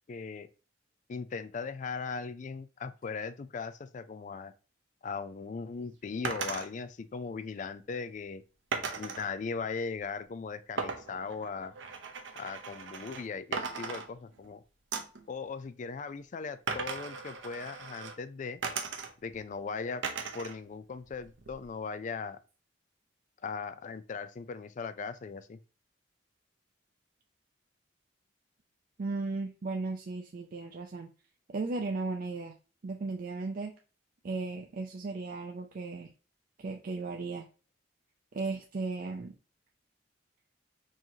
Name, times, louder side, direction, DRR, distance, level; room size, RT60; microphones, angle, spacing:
voice 1, 0.1-0.5 1.1-4.5 5.0-8.4 9.0-11.7 12.3-14.6 15.3-18.6 19.2-20.0 20.3-22.4 23.4-25.6, left 5 dB, 40° left, 0.3 m, -38 dB
sound 1, 6.2-6.7 8.7-9.3 10.8-13.3 13.5-14.5 14.9-15.2 16.7-18.2 18.6-19.4 20.0-20.6 20.9-21.7, right 5 dB, 80° right, 0.7 m, -37 dB
voice 2, 29.0-31.1 31.5-32.5 32.8-33.7 34.2-36.1 36.6-37.5 38.3-39.3, right 3 dB, 50° right, 0.4 m, -36 dB
4.6 x 3.0 x 2.7 m
head